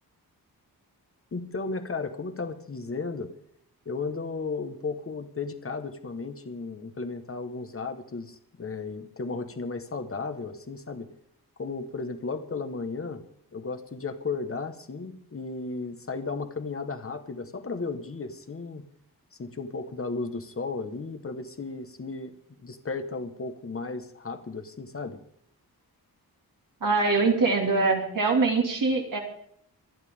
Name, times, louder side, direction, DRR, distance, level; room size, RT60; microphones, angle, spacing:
voice 1, 1.3-3.3 3.8-11.1 11.6-13.2 13.5-18.8 19.4-22.4 22.6-25.2, left 4 dB, 35° left, 9 dB, 1.4 m, -34 dB
voice 2, 26.8-29.2, right 3 dB, 60° right, 1 dB, 2.7 m, -23 dB
24.5 x 11.0 x 3.7 m, 0.68 s
wide cardioid pair, 145°, 38 cm